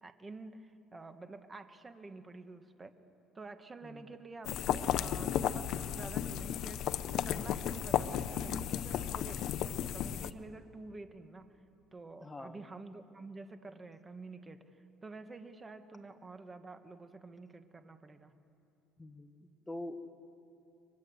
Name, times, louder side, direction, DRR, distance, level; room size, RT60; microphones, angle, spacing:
voice 1, 0.0-2.9 3.3-6.8 7.2-11.6 11.9-14.8 15.0-18.3, right 3 dB, 20° right, 8 dB, 1.5 m, -49 dB
sound 1, 4.4-10.3, left 10 dB, 60° left, 0.8 m, -34 dB
voice 2, 12.2-12.6 19.0-20.0, left 1 dB, 10° left, 6 dB, 1.7 m, -45 dB
30.0 x 24.0 x 8.1 m, 2.7 s
cardioid pair, 130°, 0 cm